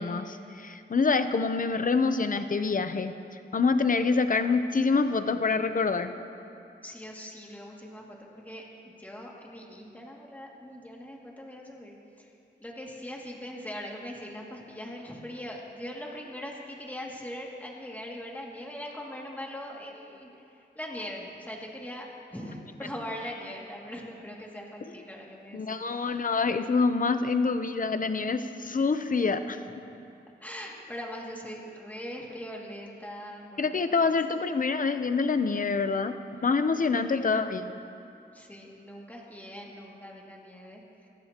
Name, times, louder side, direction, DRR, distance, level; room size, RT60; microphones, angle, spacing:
voice 1, 0.0-6.1 25.5-29.6 33.6-36.2 36.4-37.8, left 4 dB, 45° left, 9 dB, 0.7 m, -26 dB
voice 2, 6.8-12.3 12.6-26.2 29.7-30.0 30.4-34.2 36.7-37.3 38.3-41.1, equal, 10° left, -3 dB, 2.4 m, -41 dB
27.5 x 14.5 x 3.0 m, 2.7 s
wide cardioid pair, 130°, 19 cm